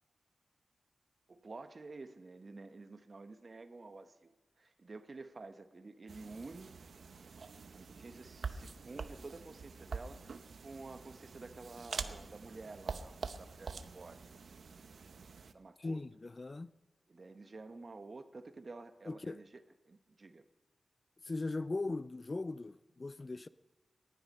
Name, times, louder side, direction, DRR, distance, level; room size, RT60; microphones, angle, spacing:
voice 1, 1.3-6.7 7.7-10.4 10.6-14.2 15.5-16.0 17.1-20.4, right 3 dB, 45° right, 1.0 m, -50 dB
sound 1, 6.1-15.5, right 5 dB, 70° right, 0.8 m, -46 dB
voice 2, 15.8-16.7 19.1-19.4 21.2-23.5, left 3 dB, 35° left, 0.4 m, -39 dB
19.0 x 11.5 x 5.4 m
wide cardioid pair, 90°, 0 cm